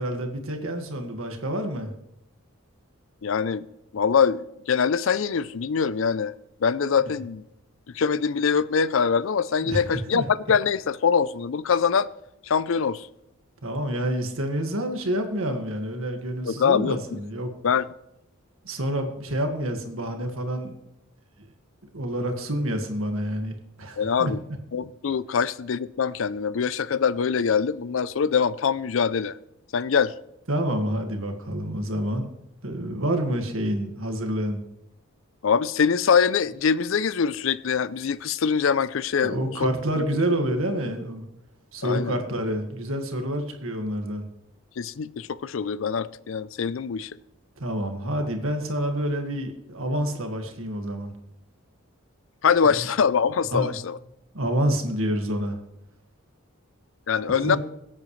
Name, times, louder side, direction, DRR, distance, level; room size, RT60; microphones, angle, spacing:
voice 1, 0.0-1.9 7.1-7.2 9.6-9.8 10.1-10.2 13.6-17.5 18.6-20.7 21.9-24.3 30.5-32.3 32.6-34.6 39.2-41.3 41.7-44.3 47.6-51.1 52.7-52.8 53.5-53.8 54.3-55.6 57.3-57.6, right 1 dB, 70° right, 1.8 m, -28 dB
voice 2, 3.2-3.7 3.9-6.3 6.6-7.4 7.9-12.1 12.4-13.1 16.4-17.2 17.6-17.9 24.0-24.4 24.7-29.4 29.7-30.1 35.4-40.1 41.8-42.2 44.8-47.1 52.4-54.0 57.1-57.6, left 6 dB, 65° left, 0.4 m, -23 dB
22.0 x 8.8 x 3.2 m
head